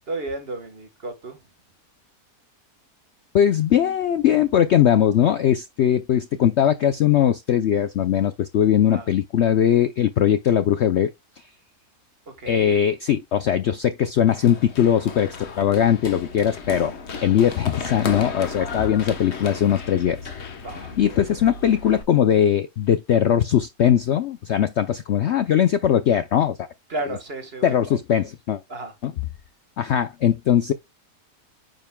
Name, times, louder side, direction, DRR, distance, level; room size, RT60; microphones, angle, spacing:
voice 1, 0.1-1.4 8.9-9.1 12.4-12.8 20.6-21.0 26.9-27.8 28.7-28.9, right 2 dB, 40° right, 1.5 m, -32 dB
voice 2, 3.3-11.1 12.5-16.9 17.2-20.2 21.0-26.7 27.1-27.2 27.6-28.6 29.0-29.1 29.8-30.7, left 9 dB, 65° left, 0.7 m, -20 dB
Run, 14.3-22.0, left 4 dB, 45° left, 1.3 m, -34 dB
8.9 x 5.3 x 2.2 m
omnidirectional pair, 1.6 m